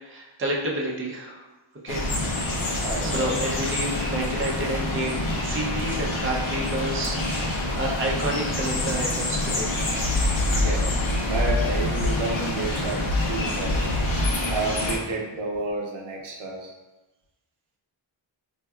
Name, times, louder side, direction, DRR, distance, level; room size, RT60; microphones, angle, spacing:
voice 1, 0.0-1.4 1.8-2.1 2.6-9.8, right 1 dB, 30° right, -2 dB, 0.5 m, -30 dB
sound 1, 1.9-15.0, left 1 dB, 80° left, 0.7 m, -26 dB
voice 2, 2.8-3.4 10.5-13.9 14.5-16.7, right 2 dB, 85° right, -1 dB, 0.7 m, -31 dB
4.3 x 2.6 x 2.3 m, 1.1 s
wide cardioid pair, 145°, 47 cm